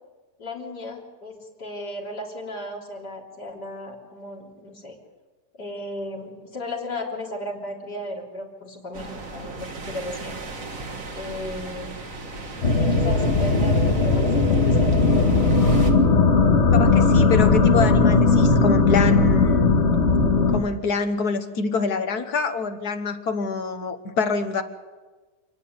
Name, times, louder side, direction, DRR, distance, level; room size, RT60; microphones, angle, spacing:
voice 1, 0.4-5.0 5.6-10.4 11.1-11.9 12.8-14.9, left 1 dB, 85° left, -2 dB, 4.2 m, -35 dB
sound 1, 8.9-15.9, right 2 dB, 55° right, 2.2 m, -36 dB
sound 2, 12.6-20.6, left 3 dB, 45° left, 1.8 m, -18 dB
voice 2, 16.7-19.8 20.5-24.6, left 4 dB, 70° left, 8 dB, 1.8 m, -25 dB
28.5 x 10.0 x 9.6 m, 1.3 s
omnidirectional pair, 1.7 m